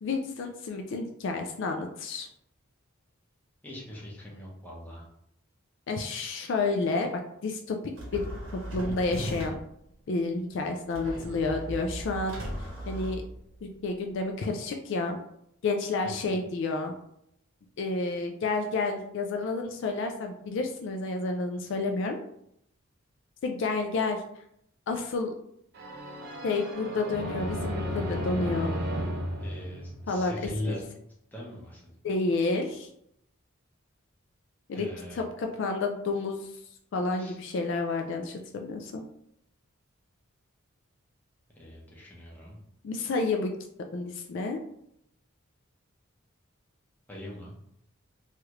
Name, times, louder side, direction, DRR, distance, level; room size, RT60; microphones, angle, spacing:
voice 1, 0.0-2.3 5.9-7.1 7.4-8.3 8.7-9.5 10.1-13.2 13.6-15.2 15.6-16.9 17.8-22.2 23.4-24.2 24.9-25.3 26.4-28.7 30.1-30.4 30.7-30.8 32.0-32.9 34.7-36.5 36.9-39.0 42.8-43.5 43.9-44.6, left 3 dB, 60° left, 4 dB, 0.3 m, -30 dB
voice 2, 3.6-5.0 16.2-16.4 29.4-30.9 31.3-31.9 34.7-35.3 37.2-37.4 41.6-42.6 47.1-47.5, left 1 dB, 10° left, -4 dB, 0.7 m, -40 dB
sound 1, 7.9-9.8 10.9-13.8, equal, 65° right, 0.8 m, -37 dB
sound 2, 25.7-30.5, equal, 50° right, 0.4 m, -34 dB
3.2 x 2.4 x 2.9 m, 0.74 s
head